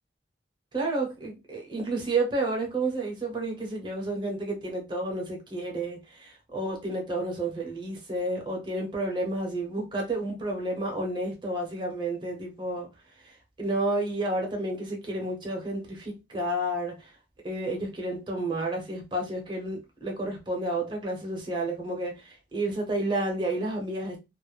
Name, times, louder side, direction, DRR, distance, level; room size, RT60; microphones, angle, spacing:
voice 1, 0.7-12.9 13.2-17.1 17.4-24.2, right 2 dB, 25° right, 0.8 m, -31 dB
2.4 x 2.0 x 3.1 m
head